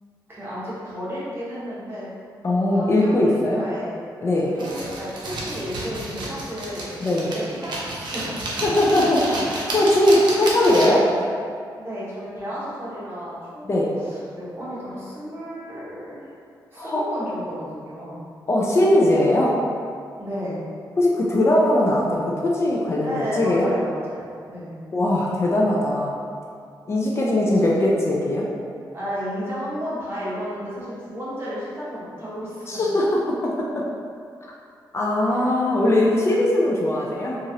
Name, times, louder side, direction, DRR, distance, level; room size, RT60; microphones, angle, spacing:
voice 1, 0.3-2.1 2.7-3.9 4.5-6.9 7.2-8.4 11.0-11.2 11.8-16.3 16.7-18.2 20.2-20.6 23.0-24.7 27.4-27.9 28.9-32.7 35.3-35.5, equal, 30° right, -10 dB, 1.1 m, -33 dB
voice 2, 2.4-3.6 4.2-4.5 7.0-7.3 8.6-11.0 13.6-13.9 16.8-17.0 18.5-19.6 21.0-23.7 24.9-26.2 26.9-28.5 32.7-33.5 34.9-37.4, left 1 dB, 35° left, -4 dB, 0.4 m, -20 dB
sound 1, 4.6-11.1, right 2 dB, 75° right, 0.6 m, -31 dB
2.9 x 2.4 x 2.7 m, 2.3 s
wide cardioid pair, 115°, 8 cm